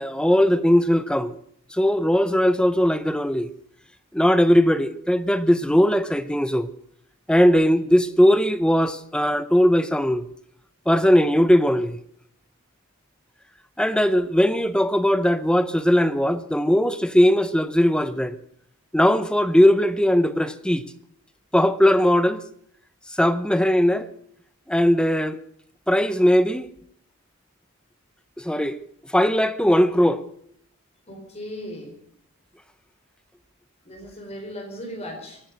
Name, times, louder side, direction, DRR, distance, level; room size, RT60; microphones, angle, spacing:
voice 1, 0.0-1.4 1.7-3.5 4.1-6.7 7.3-10.3 10.9-12.0 13.8-18.4 18.9-20.8 21.5-22.4 23.1-24.1 24.7-25.4 25.9-26.7 28.4-28.8 29.1-30.2, equal, 5° left, 0.6 m, -19 dB
voice 2, 31.1-31.9 33.8-35.4, equal, 30° left, 4.4 m, -37 dB
24.0 x 8.9 x 6.4 m
head